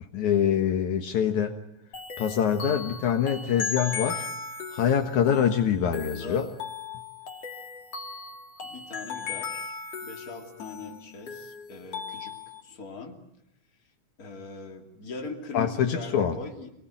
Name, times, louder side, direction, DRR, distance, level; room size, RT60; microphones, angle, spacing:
voice 1, 0.1-1.6 2.2-4.3 4.7-6.5 15.5-16.3, left 8 dB, 70° left, 4 dB, 2.7 m, -25 dB
sound 1, 1.9-12.6, left 5 dB, 55° left, 3.2 m, -37 dB
voice 2, 6.0-6.5 8.6-9.7 10.0-13.2 14.2-16.7, left 4 dB, 30° left, 1 dB, 3.0 m, -41 dB
28.5 x 19.5 x 9.3 m, 0.83 s
omnidirectional pair, 3.6 m